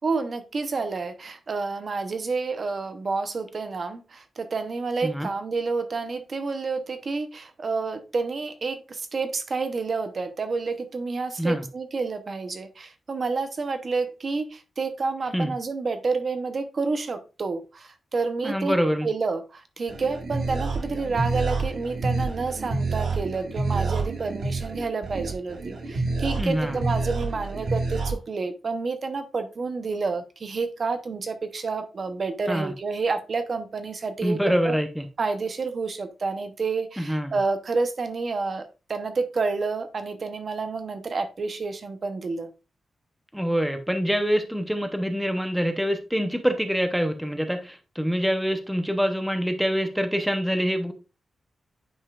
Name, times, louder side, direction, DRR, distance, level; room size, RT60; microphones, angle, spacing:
voice 1, 0.0-18.8 19.0-34.8 35.2-42.5, right 4 dB, 40° right, 0.7 m, -29 dB
voice 2, 18.4-19.1 26.3-26.9 32.5-32.7 34.2-35.1 37.0-37.4 43.3-50.9, equal, ahead, 0.6 m, -25 dB
sound 1, 19.9-28.1, right 3 dB, 60° right, 1.6 m, -28 dB
9.7 x 5.5 x 2.3 m
wide cardioid pair, 180°, 0 cm